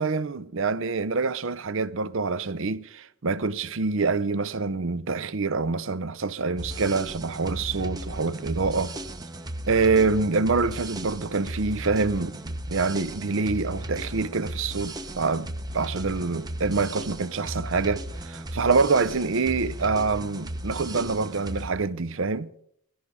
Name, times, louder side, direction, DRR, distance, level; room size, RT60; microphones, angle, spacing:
voice 1, 0.0-8.9 9.7-22.5, right 4 dB, 60° right, 0.6 m, -26 dB
sound 1, 6.6-21.7, right 1 dB, 20° right, 0.8 m, -36 dB
18.0 x 13.0 x 5.0 m
head